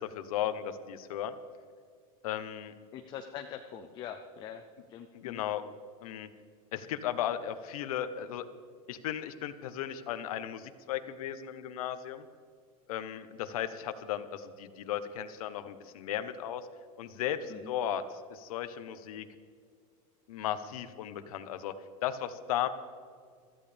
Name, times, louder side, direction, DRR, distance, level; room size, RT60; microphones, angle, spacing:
voice 1, 0.0-1.3 2.2-2.7 5.1-5.7 6.0-6.3 6.7-8.5 8.9-12.2 12.9-16.7 17.0-18.0 18.3-19.3 20.3-21.7 22.0-22.7, left 10 dB, 75° left, 11 dB, 1.1 m, -35 dB
voice 2, 2.9-4.6 4.9-5.4 17.5-17.8, left 9 dB, 25° left, 5 dB, 0.6 m, -43 dB
21.5 x 14.5 x 3.5 m, 2.1 s
supercardioid pair, 175°, 19 cm